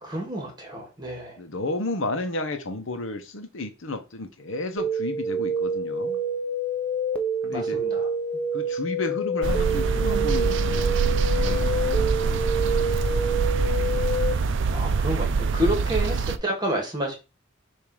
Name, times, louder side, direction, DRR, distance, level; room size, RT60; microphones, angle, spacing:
voice 1, 0.0-1.4 7.5-8.1 14.3-17.2, equal, 20° right, 2 dB, 2.0 m, -30 dB
voice 2, 1.4-6.2 7.4-7.8 8.5-13.2, left 2 dB, 65° left, 7 dB, 0.9 m, -33 dB
sound 1, 4.8-14.3, right 1 dB, 5° left, 0.8 m, -27 dB
sound 2, 9.4-16.4, right 4 dB, 60° right, 0.5 m, -24 dB
7.1 x 2.7 x 4.9 m, 0.29 s
head